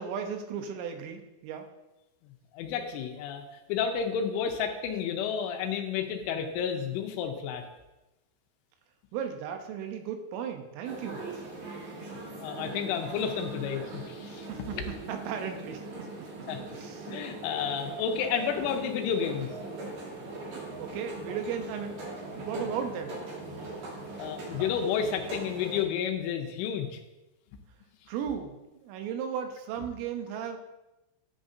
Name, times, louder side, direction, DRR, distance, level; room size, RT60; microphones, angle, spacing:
voice 1, 0.0-1.7 9.1-11.3 14.3-16.1 16.8-17.1 20.8-22.0 22.4-23.2 28.1-30.6, right 7 dB, 80° right, 5 dB, 3.3 m, -36 dB
voice 2, 2.5-3.4 3.7-7.6 12.4-14.5 16.5-16.6 17.1-19.5 24.2-27.0, left 7 dB, 80° left, 4 dB, 3.1 m, -31 dB
sound 1, 10.8-25.8, right 2 dB, 55° right, 2.9 m, -40 dB
11.0 x 7.7 x 2.7 m, 0.98 s
omnidirectional pair, 5.8 m